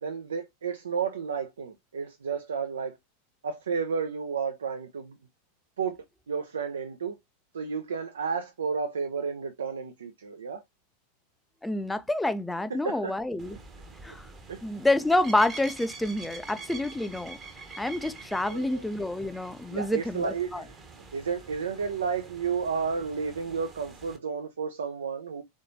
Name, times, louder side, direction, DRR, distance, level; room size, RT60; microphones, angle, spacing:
voice 1, 0.0-3.0 3.4-5.2 5.8-7.2 7.5-10.6 12.7-13.1 13.4-13.5 14.5-14.6 18.5-18.8 19.7-20.7 21.1-25.4, right 5 dB, 65° right, 0.6 m, -32 dB
voice 2, 11.6-13.6 14.0-14.3 14.6-17.4 17.8-20.6, left 2 dB, 5° left, 0.5 m, -28 dB
sound 1, 13.4-24.2, right 4 dB, 20° right, 0.9 m, -46 dB
3.8 x 3.6 x 2.6 m
figure-of-eight pair, 90°, 0 cm